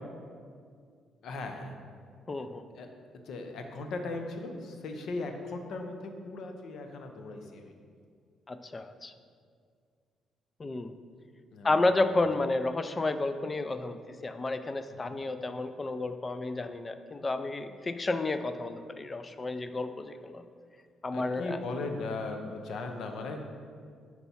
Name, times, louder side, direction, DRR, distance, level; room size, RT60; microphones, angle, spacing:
voice 1, 1.2-1.7 2.7-2.9 3.3-7.7 11.5-11.8 15.1-15.2 21.1-23.4, left 3 dB, 70° left, 4 dB, 0.7 m, -38 dB
voice 2, 2.3-2.7 8.5-9.1 10.6-11.0 11.6-20.4 21.0-21.6, left 2 dB, 30° left, 10 dB, 0.3 m, -31 dB
4.6 x 4.1 x 5.5 m, 2.1 s
cardioid pair, 90°, 0 cm